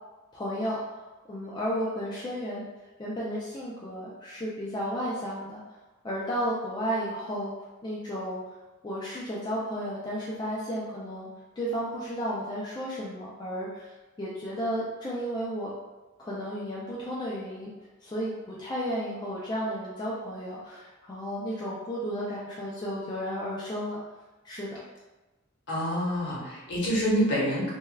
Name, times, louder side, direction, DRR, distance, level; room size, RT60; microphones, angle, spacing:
voice 1, 0.3-1.0 1.3-2.7 3.0-5.6 6.0-7.5 7.8-8.4 8.8-11.3 11.6-13.9 14.2-15.7 16.2-17.7 18.0-24.0 24.4-24.8, equal, 20° left, -6 dB, 0.3 m, -33 dB
voice 2, 25.7-27.7, equal, 55° left, -6 dB, 0.9 m, -27 dB
3.3 x 2.2 x 2.2 m, 1.1 s
head